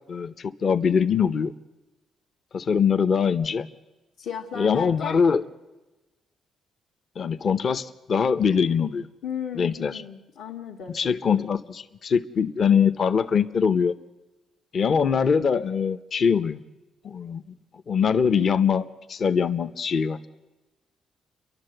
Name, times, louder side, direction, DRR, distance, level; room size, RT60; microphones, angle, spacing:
voice 1, 0.1-1.5 2.5-3.7 4.6-5.4 7.2-9.1 9.6-9.9 10.9-13.9 14.7-16.6 17.0-17.4 17.9-18.8 19.1-20.3, left 6 dB, 50° left, 11 dB, 0.7 m, -22 dB
voice 2, 4.2-5.2 9.2-11.0, left 7 dB, 80° left, -2 dB, 1.5 m, -35 dB
29.5 x 11.5 x 7.8 m, 1.1 s
cardioid pair, 90°, 0 cm